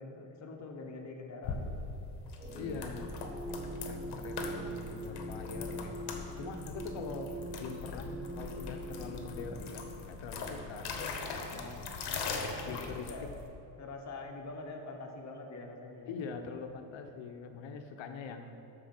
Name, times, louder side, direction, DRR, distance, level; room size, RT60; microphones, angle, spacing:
voice 1, 0.0-1.8 11.5-13.3 13.8-16.1, left 3 dB, 40° left, 1 dB, 1.2 m, -45 dB
sound 1, 1.4-13.5, left 4 dB, 60° left, 1.2 m, -41 dB
sound 2, 2.4-9.6, right 1 dB, 15° right, 0.5 m, -42 dB
voice 2, 2.5-3.2 3.8-6.1 6.4-10.9 12.2-13.3 16.0-18.6, left 5 dB, 90° left, 6 dB, 0.9 m, -43 dB
13.0 x 4.6 x 6.0 m, 3.0 s
cardioid pair, 160°, 44 cm